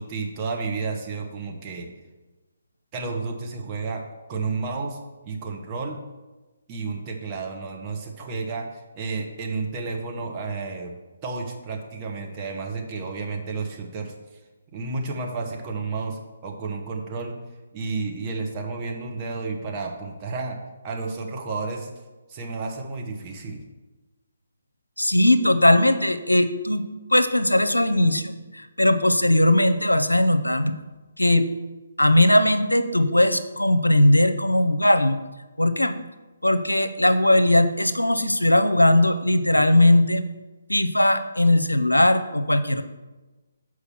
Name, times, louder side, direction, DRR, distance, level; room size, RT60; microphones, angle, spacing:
voice 1, 0.0-1.9 2.9-4.0 4.3-6.0 6.7-10.9 11.2-14.1 14.7-17.4 17.7-20.6 20.8-21.9 22.3-23.6, right 4 dB, 25° right, 1 dB, 1.2 m, -31 dB
voice 2, 25.0-26.9 27.1-30.7 31.2-31.5 32.0-35.2 35.6-35.9 36.4-40.2 40.7-42.8, left 1 dB, 90° left, 11 dB, 0.6 m, -19 dB
7.0 x 4.8 x 6.0 m, 1.2 s
figure-of-eight pair, 140°, 0 cm